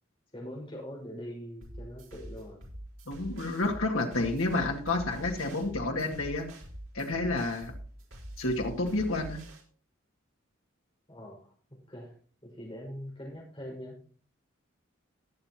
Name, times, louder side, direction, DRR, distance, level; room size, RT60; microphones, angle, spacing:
voice 1, 0.3-2.6 11.1-11.5 11.9-12.1 12.4-14.0, equal, 25° left, -2 dB, 5.4 m, -42 dB
sound 1, 1.6-9.6, right 1 dB, 80° right, 4.2 m, -45 dB
voice 2, 3.1-6.5 6.9-7.7 8.4-9.4, left 2 dB, 90° left, 3 dB, 2.2 m, -30 dB
20.5 x 7.7 x 3.0 m, 0.43 s
head